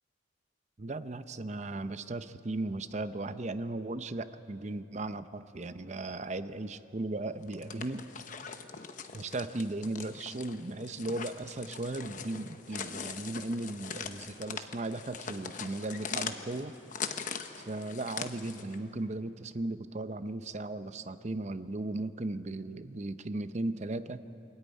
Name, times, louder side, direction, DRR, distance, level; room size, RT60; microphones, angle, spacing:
voice 1, 0.8-8.1 9.1-16.8 17.7-24.2, right 2 dB, 40° right, 11 dB, 0.7 m, -36 dB
sound 1, 7.4-18.8, left 6 dB, 45° left, 1.0 m, -41 dB
24.0 x 14.0 x 9.6 m, 2.9 s
head